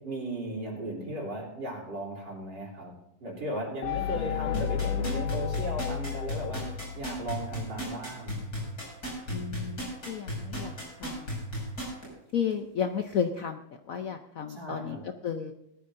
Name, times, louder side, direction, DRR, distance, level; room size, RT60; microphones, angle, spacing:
voice 1, 0.0-2.9 3.2-8.4 14.5-15.1, right 1 dB, 60° right, -2 dB, 4.1 m, -36 dB
sound 1, 3.8-7.6, left 9 dB, 85° left, 1.4 m, -32 dB
sound 2, 4.5-12.0 12.5-12.6, right 1 dB, 50° left, 6.6 m, -34 dB
voice 2, 9.3-11.4 12.3-13.6 13.9-15.0 15.2-15.5, left 7 dB, 65° left, 6 dB, 0.8 m, -33 dB
19.5 x 13.0 x 2.6 m, 0.81 s
omnidirectional pair, 2.1 m